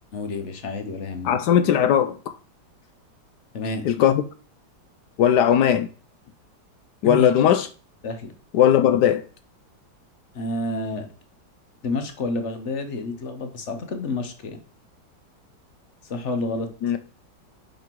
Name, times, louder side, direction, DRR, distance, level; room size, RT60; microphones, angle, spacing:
voice 1, 0.1-1.4 3.5-3.9 7.0-7.3 8.0-8.3 10.3-11.1 11.8-14.6 16.0-16.7, left 2 dB, 50° left, 0.9 m, -29 dB
voice 2, 1.2-2.2 3.8-4.2 5.2-5.9 7.0-7.7 8.5-9.2 16.8-17.0, left 9 dB, 75° left, 1.0 m, -18 dB
5.5 x 5.3 x 4.5 m
omnidirectional pair, 2.1 m